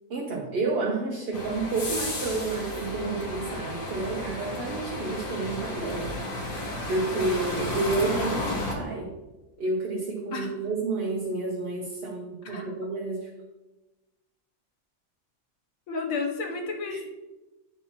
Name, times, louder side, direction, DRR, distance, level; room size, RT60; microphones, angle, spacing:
voice 1, 0.1-6.2 6.9-9.1 9.6-13.3 16.9-17.0, right 3 dB, 50° right, -1 dB, 1.0 m, -30 dB
sound 1, 1.3-8.7, left 1 dB, 45° left, 1.2 m, -33 dB
voice 2, 15.9-17.1, left 4 dB, 75° left, 2 dB, 1.4 m, -32 dB
8.3 x 2.9 x 5.6 m, 1.1 s
omnidirectional pair, 1.4 m